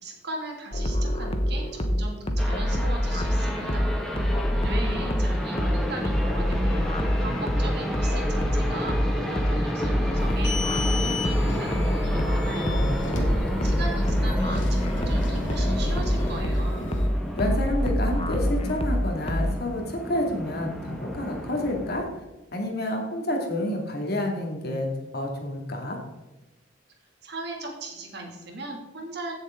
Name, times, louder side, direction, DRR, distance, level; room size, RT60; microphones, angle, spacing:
voice 1, 0.0-3.9 4.6-6.9 7.2-10.6 10.9-12.9 13.2-16.8 27.2-29.4, right 2 dB, 60° right, 0 dB, 2.7 m, -38 dB
sound 1, 0.7-19.5, equal, 35° left, 1.1 m, -26 dB
sound 2, 2.4-22.0, left 1 dB, 5° left, 2.0 m, -31 dB
sound 3, 10.2-17.1, left 1 dB, 80° left, 2.3 m, -33 dB
voice 2, 12.7-13.7 17.3-22.1 22.5-26.0, left 1 dB, 55° left, 1 dB, 2.5 m, -29 dB
16.5 x 7.2 x 3.9 m, 1.1 s
head